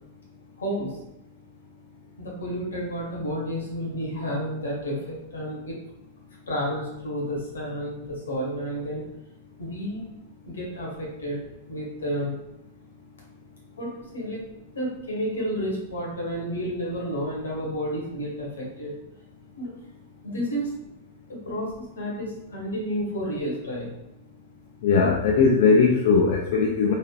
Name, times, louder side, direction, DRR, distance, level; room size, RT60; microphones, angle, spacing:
voice 1, 0.6-1.0 2.2-5.8 6.5-9.0 9.6-10.1 10.4-11.4 11.7-12.3 13.8-14.4 14.7-18.9 19.5-19.7 20.2-20.7 21.3-23.9, equal, 85° left, -3 dB, 1.1 m, -31 dB
voice 2, 24.8-27.0, left 5 dB, 60° left, -1 dB, 0.4 m, -19 dB
3.3 x 2.4 x 2.3 m, 0.88 s
hypercardioid pair, 105°, 0 cm